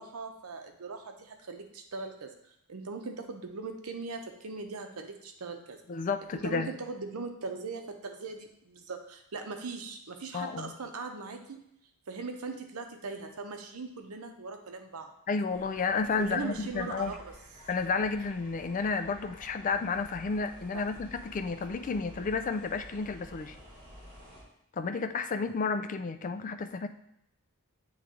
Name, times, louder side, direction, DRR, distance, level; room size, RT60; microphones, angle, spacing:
voice 1, 0.0-2.3 2.7-5.8 6.3-11.6 12.1-15.1 16.2-17.2 20.7-20.8, right 4 dB, 80° right, 5 dB, 0.8 m, -40 dB
voice 2, 5.9-6.7 10.3-10.7 15.3-17.2 17.7-23.6 24.7-26.9, left 4 dB, 35° left, 9 dB, 0.4 m, -31 dB
sound 1, 15.5-24.4, equal, 35° right, 2.2 m, -51 dB
8.2 x 3.1 x 3.7 m, 0.78 s
head